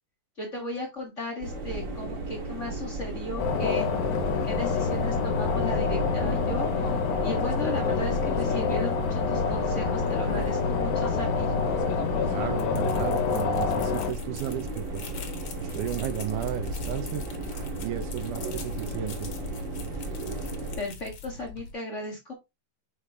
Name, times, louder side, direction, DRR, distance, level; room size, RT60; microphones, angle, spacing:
voice 1, 0.4-3.9 4.4-6.7 7.2-11.5 20.8-22.3, left 1 dB, 40° left, 1.0 m, -36 dB
sound 1, 1.4-20.8, right 2 dB, 45° right, 2.1 m, -35 dB
sound 2, 3.4-14.1, left 5 dB, 80° left, 2.6 m, -27 dB
voice 2, 12.2-15.0 15.6-17.2 17.8-19.3, right 11 dB, 75° right, 2.2 m, -34 dB
sound 3, 12.4-21.7, left 6 dB, 55° left, 2.0 m, -42 dB
6.6 x 5.1 x 3.3 m
omnidirectional pair, 4.1 m